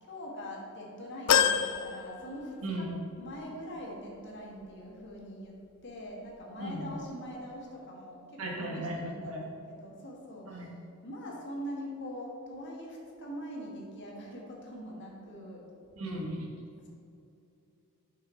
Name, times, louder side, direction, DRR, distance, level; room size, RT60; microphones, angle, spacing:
voice 1, 0.0-2.9 3.2-10.7 11.0-15.7 16.8-16.9, equal, 55° left, -2 dB, 1.5 m, -43 dB
sound 1, 1.3-2.9 3.4-3.5 4.7-4.8, left 8 dB, 85° left, 0.4 m, -28 dB
voice 2, 2.6-2.9 6.6-6.8 8.4-9.4 10.4-10.7 16.0-16.5, right 1 dB, 70° right, -1 dB, 1.5 m, -36 dB
7.3 x 5.6 x 4.0 m, 2.7 s
head